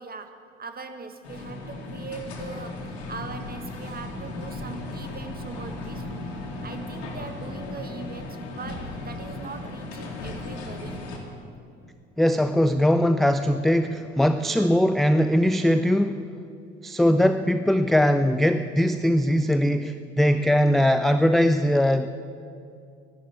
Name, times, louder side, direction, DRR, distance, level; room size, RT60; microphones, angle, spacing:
voice 1, 0.0-6.1 6.6-11.1 14.5-14.7 17.1-17.2 20.2-20.4, right 4 dB, 25° right, 8 dB, 1.5 m, -40 dB
sound 1, 1.2-11.2, left 2 dB, 75° left, 2.4 m, -36 dB
voice 2, 12.2-16.3 16.8-22.1, equal, ahead, 10 dB, 0.4 m, -21 dB
12.5 x 12.0 x 8.7 m, 2.4 s
figure-of-eight pair, 60°, 33 cm